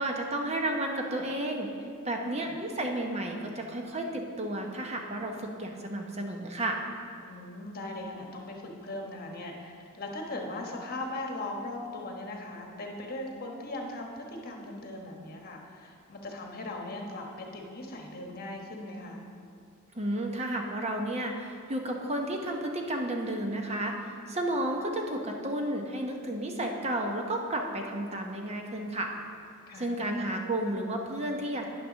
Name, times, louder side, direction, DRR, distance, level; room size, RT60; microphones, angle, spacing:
voice 1, 0.0-1.7 2.0-6.8 19.9-29.1 29.8-31.7, right 1 dB, 30° right, 2 dB, 0.9 m, -32 dB
voice 2, 2.2-2.5 7.3-19.3 29.7-30.0, left 2 dB, 45° left, 1 dB, 1.3 m, -39 dB
9.7 x 6.6 x 6.2 m, 2.3 s
head